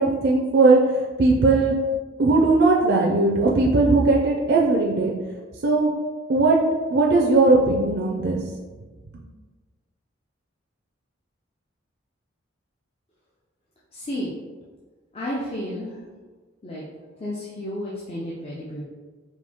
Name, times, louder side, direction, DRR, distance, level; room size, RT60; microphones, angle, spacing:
voice 1, 0.0-1.8 2.2-5.1 5.6-6.0 6.3-6.6 6.9-8.4, right 3 dB, 60° right, -2 dB, 0.5 m, -18 dB
voice 2, 13.9-14.3 15.1-15.9 16.6-16.8 17.2-18.9, left 1 dB, 30° left, -6 dB, 0.6 m, -31 dB
4.4 x 2.7 x 3.6 m, 1.4 s
head